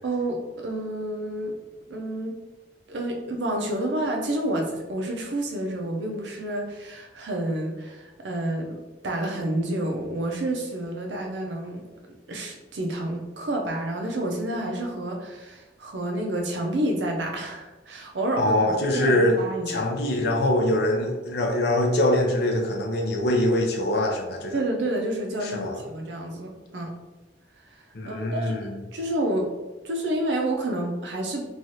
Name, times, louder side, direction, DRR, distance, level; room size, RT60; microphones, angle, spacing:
voice 1, 0.0-1.5 1.9-2.3 2.9-11.8 12.3-18.6 18.9-19.9 24.5-26.9 28.0-29.5 29.8-31.5, right 1 dB, 80° right, 1 dB, 0.6 m, -29 dB
voice 2, 18.4-19.4 19.7-24.6 25.4-25.8 27.9-28.8, left 1 dB, 65° left, 1 dB, 0.5 m, -23 dB
3.1 x 2.4 x 2.7 m, 1.1 s
head